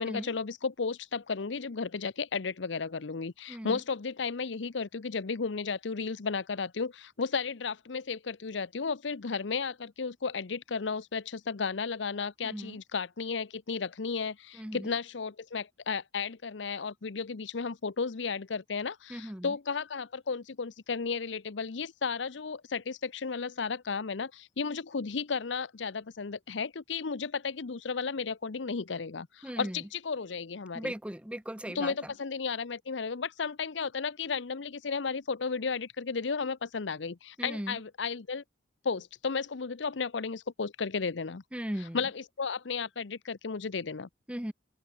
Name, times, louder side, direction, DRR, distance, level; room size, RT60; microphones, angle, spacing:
voice 1, 0.0-30.9 31.7-38.4 38.8-41.4 41.8-44.1, left 5 dB, 80° left, 0.7 m, -34 dB
voice 2, 3.5-3.8 12.4-12.8 14.6-14.9 19.1-19.5 29.4-29.8 30.7-31.9 37.4-37.8 41.5-42.0 44.3-44.5, equal, 5° right, 0.8 m, -37 dB
head